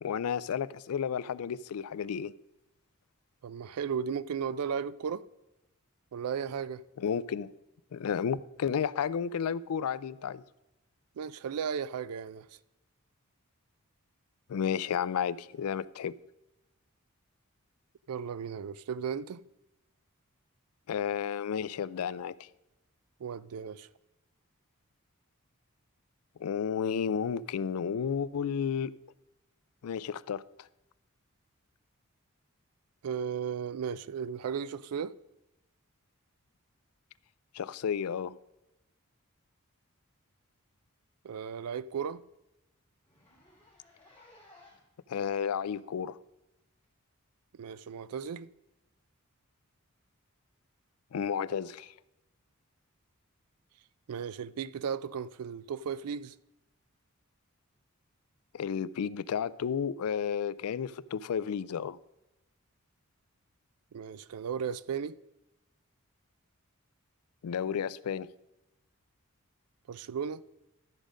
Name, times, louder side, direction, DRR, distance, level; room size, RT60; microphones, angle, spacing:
voice 1, 0.0-2.3 7.0-7.5 7.9-10.4 14.5-16.1 20.9-22.5 26.4-28.9 29.8-30.4 37.5-38.4 45.1-46.2 51.1-51.9 58.5-62.0 67.4-68.3, left 7 dB, 80° left, 0.4 m, -32 dB
voice 2, 3.4-5.3 6.1-6.8 11.2-12.5 18.1-19.4 23.2-23.9 33.0-35.1 41.2-42.2 47.6-48.5 54.1-56.3 63.9-65.2 69.9-70.4, right 7 dB, 90° right, 0.4 m, -35 dB
Zipper (clothing), 40.4-40.6 40.9-41.0 41.4-41.5 41.8-41.9 42.2-42.3 43.0-45.0 45.7-45.8 46.8-46.9, left 2 dB, 5° left, 3.0 m, -59 dB
12.5 x 5.1 x 6.3 m
head